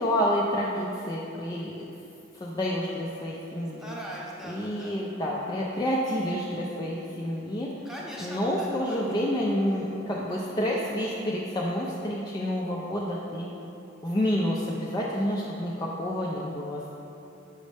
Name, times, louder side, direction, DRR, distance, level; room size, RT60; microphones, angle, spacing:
voice 1, 0.0-1.9 2.4-3.9 4.4-7.7 8.2-13.5 14.0-16.9, equal, 20° left, -5 dB, 0.4 m, -29 dB
voice 2, 3.8-4.9 7.8-9.0, equal, ahead, -5 dB, 0.8 m, -40 dB
6.3 x 5.2 x 3.3 m, 2.8 s
head